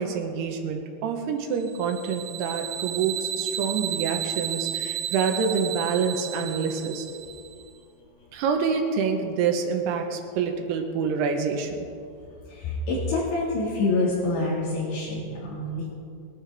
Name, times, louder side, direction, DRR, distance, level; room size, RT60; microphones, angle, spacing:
voice 1, 0.0-7.1 8.3-11.8, right 6 dB, 70° right, 4 dB, 2.7 m, -27 dB
sound 1, 1.7-7.6, right 11 dB, 90° right, 2.5 m, -33 dB
voice 2, 12.5-15.9, left 2 dB, 65° left, -8 dB, 4.3 m, -26 dB
22.0 x 11.0 x 3.5 m, 2.5 s
omnidirectional pair, 5.6 m